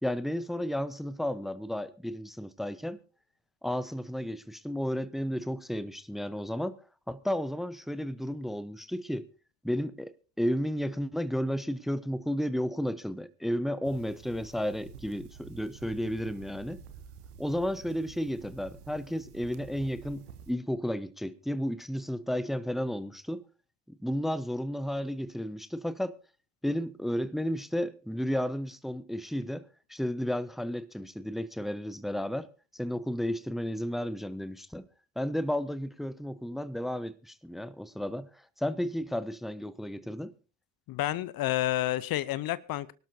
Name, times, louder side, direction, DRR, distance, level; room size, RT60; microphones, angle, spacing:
voice 1, 0.0-3.0 3.6-6.8 7.1-9.3 9.6-16.8 17.4-23.4 23.9-26.2 26.6-32.5 32.7-34.9 35.2-38.3 38.6-40.3, equal, ahead, 0.9 m, -33 dB
sound 1, 13.8-20.5, right 7 dB, 90° right, 1.0 m, -49 dB
voice 2, 40.9-42.9, left 14 dB, 50° left, 0.8 m, -30 dB
24.5 x 12.0 x 2.7 m
hypercardioid pair, 50°, 44 cm